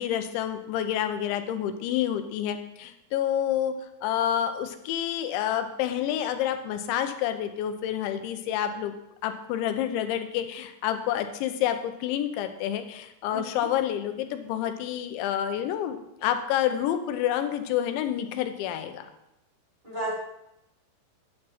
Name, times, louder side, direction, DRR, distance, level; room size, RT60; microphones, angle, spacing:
voice 1, 0.0-3.7 4.0-8.9 9.2-19.1, left 10 dB, 90° left, 8 dB, 3.2 m, -28 dB
voice 2, 13.3-13.6 19.8-20.1, right 1 dB, 10° right, -8 dB, 3.2 m, -33 dB
10.0 x 7.6 x 4.3 m, 0.86 s
omnidirectional pair, 5.1 m